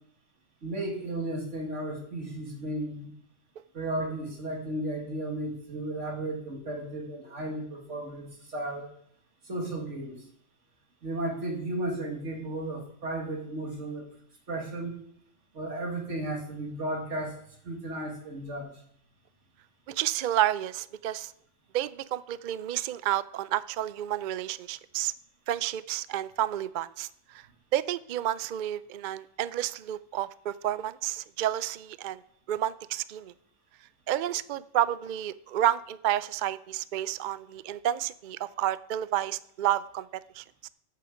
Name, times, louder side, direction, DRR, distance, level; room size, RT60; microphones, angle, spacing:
voice 1, 0.6-3.1 3.7-8.9 9.5-10.2 11.0-14.1 14.5-15.0 15.5-17.4 17.6-18.7, right 1 dB, 80° right, 2 dB, 2.4 m, -34 dB
voice 2, 19.9-21.3 21.7-25.1 25.5-27.4 27.7-32.2 32.5-33.3 34.1-40.7, right 12 dB, 60° right, 17 dB, 0.5 m, -30 dB
8.7 x 7.7 x 7.1 m, 0.69 s
omnidirectional pair, 1.2 m